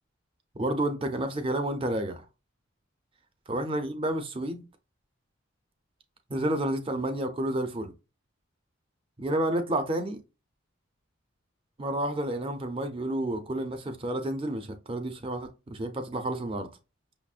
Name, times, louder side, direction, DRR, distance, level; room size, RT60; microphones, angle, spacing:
voice 1, 0.5-2.2 3.5-4.6 6.3-7.9 9.2-10.2 11.8-16.7, right 1 dB, 25° right, 0.5 m, -30 dB
6.0 x 2.0 x 2.4 m
head